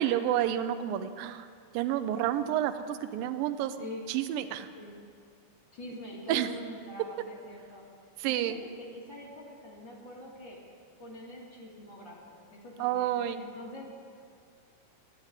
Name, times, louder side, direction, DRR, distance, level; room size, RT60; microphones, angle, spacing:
voice 1, 0.0-1.5 1.7-3.8 4.1-4.7 6.3-6.5 8.2-8.6 12.8-13.4, right 11 dB, 90° right, 10 dB, 2.1 m, -29 dB
voice 2, 5.7-7.8 8.2-10.6 11.0-13.9, left 1 dB, 45° left, -4 dB, 1.6 m, -45 dB
13.0 x 8.9 x 8.9 m, 2.2 s
omnidirectional pair, 4.7 m